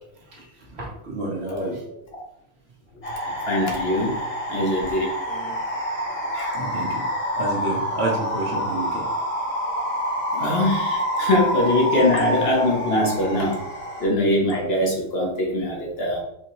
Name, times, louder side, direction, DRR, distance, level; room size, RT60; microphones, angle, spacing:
voice 1, 0.8-1.8 5.3-5.6 6.5-7.0 7.4-9.0, right 2 dB, 60° right, -2 dB, 1.3 m, -29 dB
sound 1, 3.0-14.1, equal, 30° left, 1.1 m, -27 dB
voice 2, 3.5-4.2 4.5-5.1 6.1-6.6 10.3-13.6 14.0-16.2, left 1 dB, 55° left, 0 dB, 1.1 m, -22 dB
4.7 x 2.8 x 3.0 m, 0.82 s
omnidirectional pair, 1.3 m